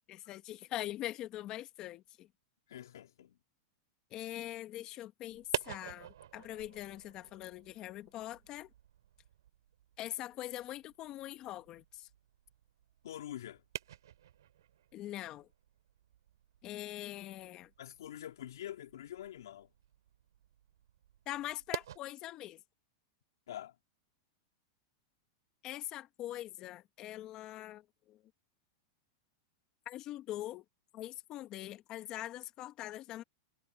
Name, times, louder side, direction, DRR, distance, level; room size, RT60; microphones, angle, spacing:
voice 1, 0.1-2.3 4.1-8.7 10.0-12.1 14.9-15.5 16.6-17.7 21.2-22.6 25.6-28.2 29.8-30.6 30.9-33.2, left 14 dB, 35° left, 1.7 m, -43 dB
voice 2, 2.7-3.4 13.0-13.6 17.8-19.7 23.5-23.8, left 11 dB, 85° left, 4.1 m, -45 dB
sound 1, 5.3-22.0, right 11 dB, 90° right, 3.0 m, -48 dB
supercardioid pair, 145°, 2 cm